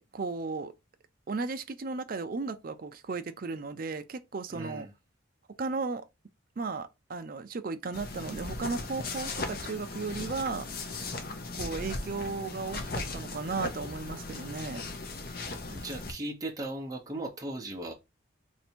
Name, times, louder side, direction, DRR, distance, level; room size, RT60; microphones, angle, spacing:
voice 1, 0.1-0.7 1.3-4.9 5.6-6.0 6.6-10.7 11.5-14.8, right 4 dB, 45° right, 0.4 m, -35 dB
voice 2, 4.5-4.9 15.7-17.9, right 1 dB, 20° right, 0.7 m, -37 dB
sound 1, 7.9-16.1, left 3 dB, 50° left, 0.7 m, -37 dB
3.3 x 2.7 x 4.3 m
head